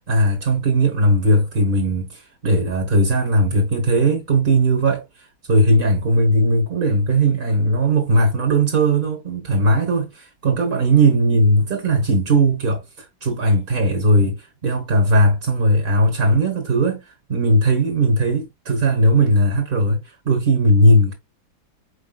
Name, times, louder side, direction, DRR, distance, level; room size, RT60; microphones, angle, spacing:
voice 1, 0.1-5.0 5.5-17.0 17.3-20.0 20.2-21.1, right 1 dB, 35° right, 1.1 m, -18 dB
4.9 x 4.8 x 2.3 m
omnidirectional pair, 2.1 m